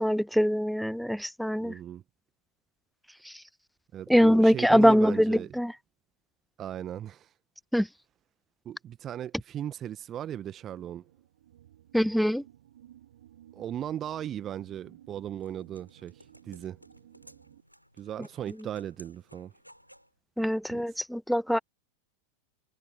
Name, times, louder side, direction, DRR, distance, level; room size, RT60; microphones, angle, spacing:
voice 1, 0.0-1.7 3.3-3.4 4.1-5.7 7.7-7.9 11.9-12.4 20.4-21.6, equal, ahead, 0.5 m, -23 dB
voice 2, 1.6-2.0 3.9-5.5 6.6-7.3 8.6-11.0 13.5-16.8 18.0-19.5 20.7-20.8, right 10 dB, 30° right, 1.4 m, -37 dB
sound 1, 10.3-17.6, right 12 dB, 60° right, 7.9 m, -56 dB
sound 2, 14.9-20.1, equal, 90° left, 5.1 m, -57 dB
figure-of-eight pair, 90°, 0 cm